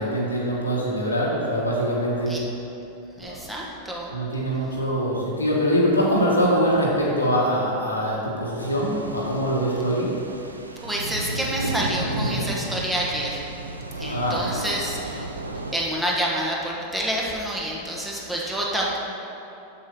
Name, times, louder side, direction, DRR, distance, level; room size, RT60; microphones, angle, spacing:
voice 1, 0.0-2.4 3.2-3.4 4.1-10.1 14.1-14.4, equal, 80° left, -4 dB, 1.5 m, -23 dB
voice 2, 3.2-4.1 10.8-13.4 14.0-15.3 15.7-19.0, right 1 dB, 5° right, -4 dB, 1.3 m, -28 dB
sound 1, 8.6-15.7, right 2 dB, 80° right, 0.5 m, -33 dB
6.9 x 6.6 x 5.5 m, 2.9 s
figure-of-eight pair, 90°, 0 cm